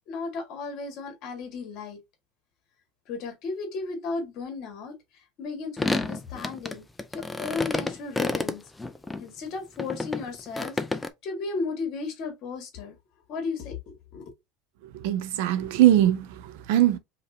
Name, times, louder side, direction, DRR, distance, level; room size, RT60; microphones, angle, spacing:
voice 1, 0.1-2.0 3.1-5.0 5.4-6.9 7.1-8.6 9.2-13.0 13.3-14.2, left 4 dB, 45° left, 1.8 m, -35 dB
sound 1, 5.8-9.2 9.8-11.1, left 2 dB, 5° left, 0.4 m, -29 dB
voice 2, 14.9-17.0, right 13 dB, 70° right, 0.7 m, -21 dB
5.0 x 3.1 x 2.7 m
cardioid pair, 165°, 0 cm